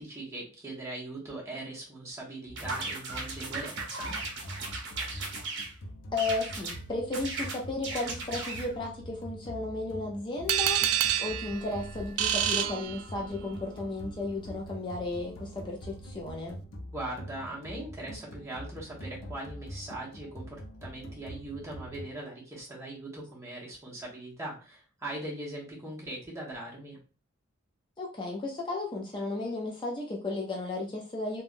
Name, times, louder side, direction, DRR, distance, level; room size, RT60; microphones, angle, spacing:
voice 1, 0.0-4.1 16.9-27.0, right 1 dB, 15° right, -4 dB, 1.1 m, -40 dB
sound 1, 2.5-22.1, equal, 65° left, 0.6 m, -44 dB
sound 2, 2.6-5.7 6.2-6.8 7.1-8.7, right 3 dB, 60° right, 0.7 m, -37 dB
voice 2, 6.1-16.6 28.0-31.4, left 2 dB, 25° left, -1 dB, 0.4 m, -34 dB
sound 3, 10.5-13.5, right 10 dB, 85° right, 0.3 m, -28 dB
3.4 x 2.2 x 2.5 m, 0.35 s
head